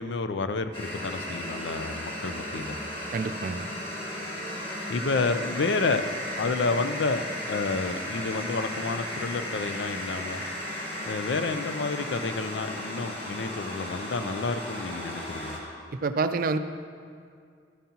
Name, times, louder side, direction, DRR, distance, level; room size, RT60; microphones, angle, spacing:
voice 1, 0.0-2.8 4.9-6.1 6.4-10.4 11.0-15.6, left 3 dB, 80° left, 9 dB, 0.5 m, -30 dB
sound 1, 0.7-15.6, left 1 dB, 30° left, 1.6 m, -35 dB
voice 2, 3.1-3.7 16.0-16.6, right 4 dB, 50° right, 10 dB, 0.4 m, -27 dB
13.5 x 9.1 x 2.9 m, 2.3 s
head